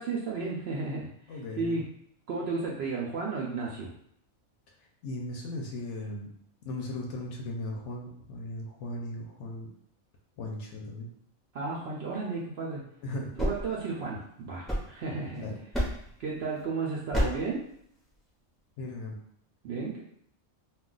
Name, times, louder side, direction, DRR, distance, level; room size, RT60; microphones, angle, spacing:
voice 1, 0.0-1.8 2.3-3.9 11.5-12.8 13.4-15.4 16.2-17.6 19.6-20.0, right 4 dB, 65° right, -3 dB, 0.6 m, -33 dB
voice 2, 1.3-1.8 5.0-6.3 6.6-9.7 10.4-11.1 13.0-13.3 15.4-15.6 18.8-19.2, left 1 dB, 65° left, 0 dB, 0.8 m, -37 dB
sound 1, 13.2-15.3 15.7-16.2 17.1-17.6, equal, ahead, 0.5 m, -31 dB
2.4 x 2.3 x 3.7 m, 0.67 s
omnidirectional pair, 1.4 m